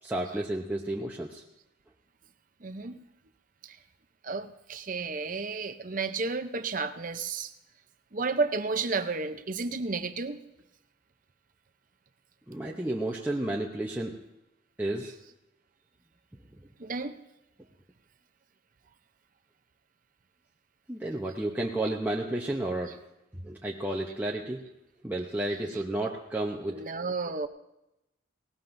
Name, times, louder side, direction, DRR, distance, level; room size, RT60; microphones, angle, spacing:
voice 1, 0.0-1.4 12.5-14.2 14.8-15.2 20.9-23.0 23.3-24.6 25.0-26.9, right 1 dB, 10° right, -2 dB, 0.7 m, -32 dB
voice 2, 2.6-3.0 3.6-3.8 4.2-7.5 8.1-10.4 16.8-17.2 25.7-25.8 26.7-27.5, right 4 dB, 40° right, 9 dB, 0.7 m, -32 dB
19.0 x 18.0 x 2.7 m, 0.91 s
head